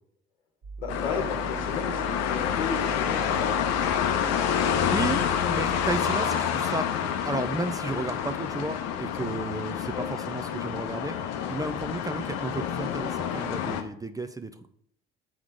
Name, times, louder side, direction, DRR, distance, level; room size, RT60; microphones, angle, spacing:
sound 1, 0.6-6.0, right 5 dB, 45° right, 1.6 m, -40 dB
voice 1, 0.8-3.5 9.9-10.1, left 5 dB, 80° left, 4 dB, 1.2 m, -34 dB
sound 2, 0.9-13.8, left 8 dB, 55° left, 0.8 m, -28 dB
voice 2, 4.9-6.9 7.3-11.2 11.5-14.7, right 2 dB, 10° right, 9 dB, 0.6 m, -33 dB
7.9 x 3.6 x 4.9 m, 0.66 s
figure-of-eight pair, 50°, 30 cm